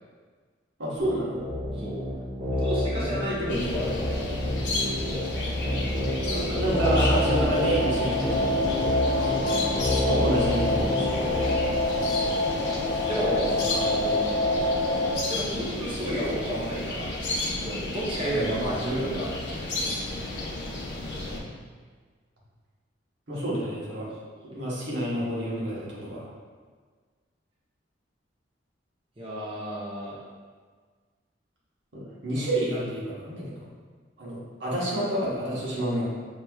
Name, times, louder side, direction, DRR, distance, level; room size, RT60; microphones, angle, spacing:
voice 1, 0.8-1.4 6.2-8.4 10.1-11.3 18.3-18.5 23.3-24.1 24.4-26.3 31.9-33.5 34.2-36.1, right 1 dB, 75° right, -7 dB, 1.2 m, -29 dB
sound 1, 1.0-11.8, left 1 dB, 50° right, 1.1 m, -29 dB
voice 2, 2.5-3.9 9.1-9.5 13.0-14.3 15.3-17.1 17.6-19.3 29.2-30.2, right 1 dB, 30° right, -7 dB, 0.8 m, -31 dB
sound 2, 3.5-21.4, left 2 dB, 70° left, 0.9 m, -33 dB
sound 3, 6.7-15.1, left 1 dB, 25° left, 0.5 m, -27 dB
6.1 x 3.0 x 2.3 m, 1.5 s
head